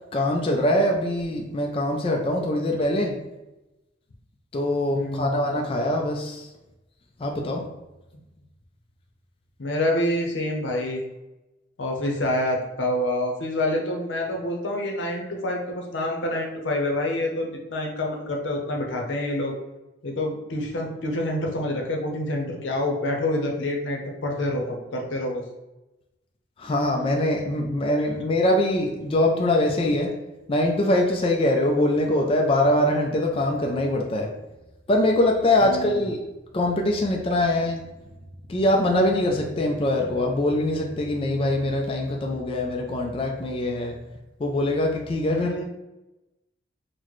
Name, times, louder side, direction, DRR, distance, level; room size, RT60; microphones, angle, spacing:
voice 1, 0.1-3.1 4.5-6.5 7.2-7.7 26.6-30.1 30.5-34.3 34.9-36.2 36.5-37.9 38.5-44.0 44.4-45.6, left 1 dB, 30° left, 0 dB, 0.3 m, -23 dB
voice 2, 4.9-5.4 9.6-11.0 11.8-19.5 20.0-25.4 35.6-36.1 45.2-45.6, left 1 dB, 90° left, 1 dB, 0.7 m, -27 dB
4.0 x 2.1 x 3.0 m, 0.99 s
head